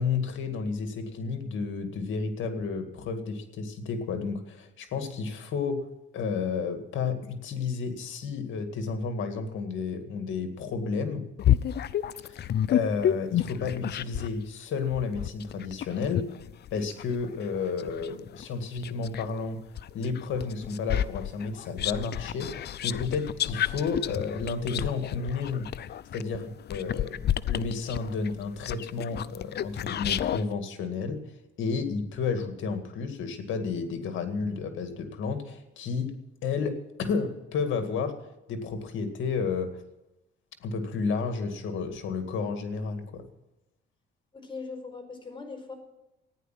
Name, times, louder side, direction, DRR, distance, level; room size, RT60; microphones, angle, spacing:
voice 1, 0.0-5.8 6.1-11.3 12.2-16.3 16.7-19.6 19.9-25.7 26.1-31.2 31.6-36.1 36.4-38.2 38.5-39.8 40.6-43.2, left 5 dB, 75° left, 7 dB, 2.2 m, -31 dB
sound 1, 11.4-14.4 14.9-19.3 19.8-30.4, left 11 dB, 55° left, 0.6 m, -30 dB
voice 2, 44.3-45.7, left 4 dB, 25° left, 4 dB, 4.8 m, -40 dB
14.5 x 10.0 x 7.6 m, 0.96 s
cardioid pair, 90°, 20 cm